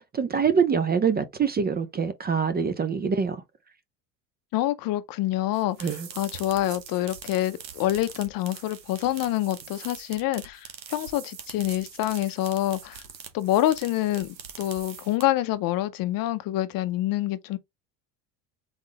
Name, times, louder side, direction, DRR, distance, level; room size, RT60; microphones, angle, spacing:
voice 1, 0.0-3.4 5.8-6.1, right 6 dB, 20° right, 0.6 m, -25 dB
voice 2, 4.5-13.0 13.3-17.6, left 14 dB, 45° left, 0.7 m, -27 dB
sound 1, 5.5-15.5, right 7 dB, 90° right, 1.0 m, -43 dB
4.0 x 3.6 x 3.3 m
hypercardioid pair, 70°, 49 cm